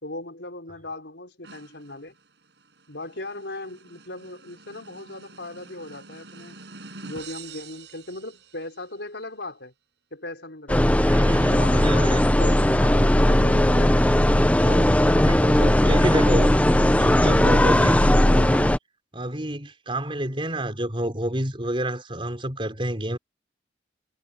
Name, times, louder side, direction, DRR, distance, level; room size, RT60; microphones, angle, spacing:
voice 1, 0.0-2.1 2.9-6.6 7.0-9.7 10.1-10.9 11.3-14.0 14.6-16.3, left 2 dB, 75° left, 5.2 m, -38 dB
sound 1, 1.4-9.0, right 4 dB, 70° right, 5.9 m, -47 dB
sound 2, 10.7-18.8, left 1 dB, 10° left, 0.6 m, -18 dB
voice 2, 11.0-12.2 15.2-18.8 19.1-23.2, right 1 dB, 30° right, 4.6 m, -29 dB
head